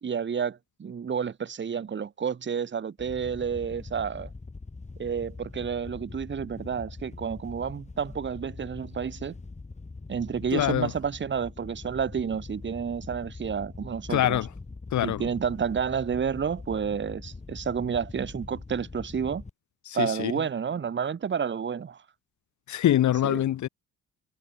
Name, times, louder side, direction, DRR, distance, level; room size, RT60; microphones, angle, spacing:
voice 1, 0.0-4.3 5.0-9.3 10.1-14.4 15.0-19.4 19.9-22.0 23.2-23.4, right 7 dB, 40° right, 1.8 m, -30 dB
Wind / Boat Water vehicle, 3.0-19.5, left 3 dB, 25° left, 5.8 m, -43 dB
voice 2, 10.5-10.9 14.1-14.5 14.9-15.3 19.9-20.3 22.7-23.7, left 12 dB, 70° left, 2.3 m, -24 dB
cardioid pair, 90°, 30 cm